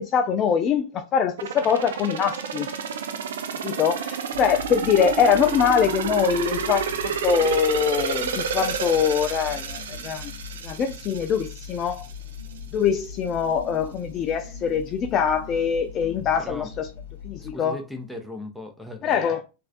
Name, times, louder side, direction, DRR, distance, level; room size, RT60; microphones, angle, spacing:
voice 1, 0.0-2.7 3.6-10.3 10.6-12.1 12.7-16.9 17.2-17.7 19.0-19.4, left 7 dB, 30° left, 0.3 m, -23 dB
sound 1, 1.4-12.1 12.5-12.6, right 7 dB, 60° right, 0.4 m, -30 dB
sound 2, 4.3-17.6, left 6 dB, 70° left, 0.6 m, -40 dB
voice 2, 16.1-16.7 17.4-19.4, left 2 dB, ahead, 0.7 m, -38 dB
3.1 x 2.5 x 2.5 m
figure-of-eight pair, 90°, 0 cm